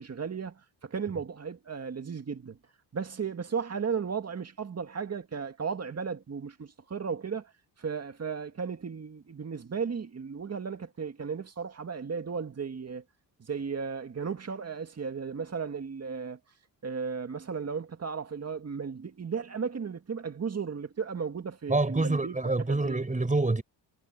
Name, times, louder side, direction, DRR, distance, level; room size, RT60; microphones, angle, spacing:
voice 1, 0.0-2.6 2.9-7.5 7.8-13.0 13.4-16.4 16.8-22.4 22.7-23.0, right 6 dB, 35° right, 2.1 m, -35 dB
voice 2, 21.7-23.6, right 2 dB, 15° right, 5.6 m, -26 dB
cardioid pair, 105°, 43 cm